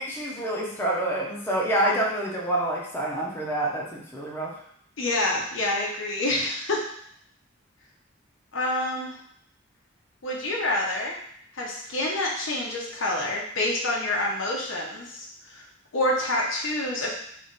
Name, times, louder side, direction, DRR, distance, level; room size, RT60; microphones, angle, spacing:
voice 1, 0.0-4.5, right 1 dB, 10° left, -4 dB, 0.7 m, -27 dB
voice 2, 5.0-6.8 8.5-9.2 10.2-11.1 11.5-15.6 15.9-17.1, left 1 dB, 75° left, -2 dB, 1.0 m, -27 dB
3.3 x 3.2 x 4.0 m, 0.65 s
head